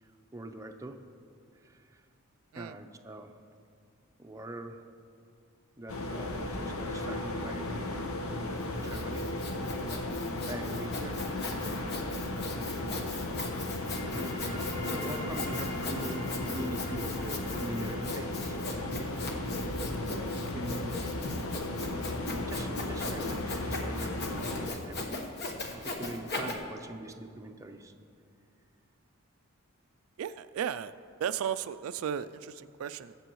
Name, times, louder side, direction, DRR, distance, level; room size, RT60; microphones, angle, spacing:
voice 1, 0.0-1.0 1.5-2.0 2.5-3.4 4.2-4.8 5.8-7.9 8.6-9.3 10.3-11.2 14.2-14.3 14.8-18.6 20.5-21.0 22.3-25.2 25.7-27.9, right 1 dB, 15° right, 4 dB, 0.6 m, -43 dB
sound 1, 5.9-24.7, left 2 dB, 85° left, 0.9 m, -35 dB
Sawing, 8.5-26.5, left 2 dB, 50° left, 1.2 m, -39 dB
sound 2, 13.5-24.6, equal, 25° left, 2.0 m, -45 dB
voice 2, 30.2-30.9 31.2-33.2, right 8 dB, 75° right, 13 dB, 0.3 m, -35 dB
21.5 x 7.7 x 3.1 m, 2.4 s
head